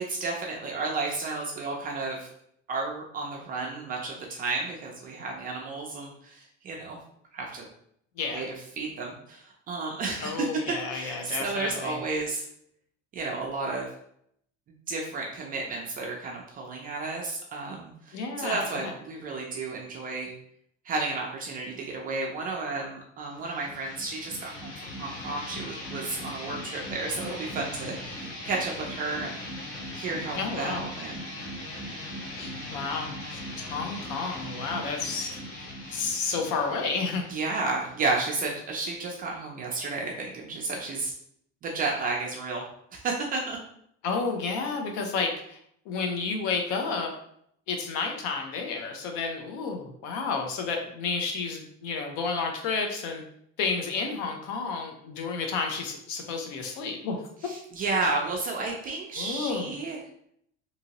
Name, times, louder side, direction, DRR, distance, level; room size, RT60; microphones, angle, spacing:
voice 1, 0.0-2.3 2.7-7.0 7.3-7.7 8.3-8.5 8.8-12.4 13.1-13.9 14.9-20.3 20.8-29.4 29.9-31.1 35.9-36.0 37.3-41.1 41.6-42.6 42.9-43.6 57.4-60.0, right 3 dB, 30° right, -1 dB, 0.4 m, -32 dB
voice 2, 8.2-8.5 10.2-12.0 18.1-18.9 30.3-30.8 32.3-37.3 44.0-45.6 45.8-47.1 47.7-53.2 53.6-57.5 57.8-58.0 59.2-59.7, left 4 dB, 80° left, 3 dB, 0.7 m, -31 dB
sound 1, 23.3-38.7, left 1 dB, 55° left, 1.1 m, -39 dB
2.8 x 2.6 x 2.9 m, 0.70 s
cardioid pair, 170°, 29 cm